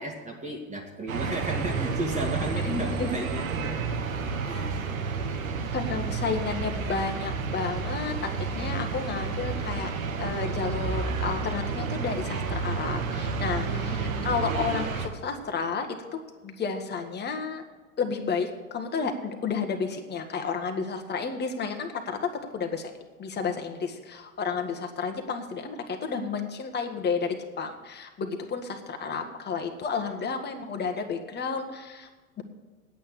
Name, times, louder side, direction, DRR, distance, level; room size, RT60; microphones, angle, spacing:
voice 1, 0.0-4.0 4.4-6.3 13.6-14.5, right 1 dB, 15° right, 1 dB, 1.8 m, -36 dB
sound 1, 1.1-15.1, right 4 dB, 75° right, 1.4 m, -31 dB
voice 2, 2.6-3.1 5.7-9.9 10.2-17.6 18.0-22.2 22.5-22.9 23.2-32.1 32.4-32.5, left 5 dB, 25° left, 4 dB, 1.5 m, -31 dB
9.2 x 8.7 x 8.5 m, 1.3 s
figure-of-eight pair, 80°, 41 cm